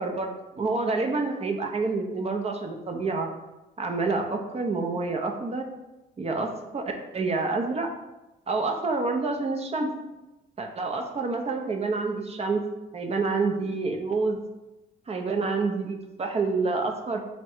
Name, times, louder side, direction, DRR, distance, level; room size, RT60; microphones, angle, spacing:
voice 1, 0.0-3.3 3.8-5.7 6.2-6.8 7.1-7.9 8.5-9.9 10.6-12.6 12.9-14.4 15.1-17.2, right 3 dB, 30° right, 3 dB, 0.6 m, -28 dB
3.6 x 2.2 x 4.3 m, 1.0 s
cardioid pair, 90°, 20 cm